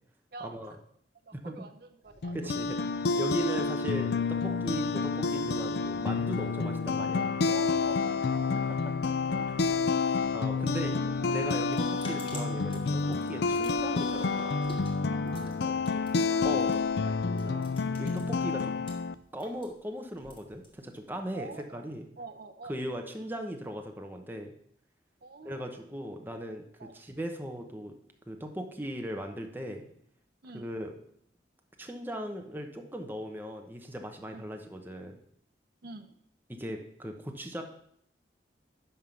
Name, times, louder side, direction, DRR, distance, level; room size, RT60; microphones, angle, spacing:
voice 1, 0.3-0.8 1.3-2.5 3.5-3.6 4.4-4.7 6.4-6.6 7.0-8.7 9.0-9.9 10.5-11.9 15.1-17.8 21.3-22.8 25.2-25.7 26.8-27.0 30.4-30.7 34.3-34.5 35.8-36.1, right 3 dB, 60° right, 8 dB, 0.7 m, -46 dB
sound 1, 2.0-19.1, left 1 dB, 85° left, 2.8 m, -55 dB
sound 2, 2.2-19.1, left 4 dB, 60° left, 0.4 m, -29 dB
voice 2, 2.3-2.8 3.2-7.3 8.8-8.9 10.3-10.9 11.3-14.7 15.4-15.7 16.4-16.8 18.0-18.9 19.3-22.1 22.7-24.5 25.4-26.6 26.9-28.0 28.3-29.9 30.5-30.9 31.8-35.2 36.5-37.6, equal, 10° right, 3 dB, 0.9 m, -38 dB
sound 3, 11.0-18.9 19.2-21.2, left 1 dB, 30° left, 2.0 m, -49 dB
11.0 x 3.7 x 7.0 m, 0.67 s
head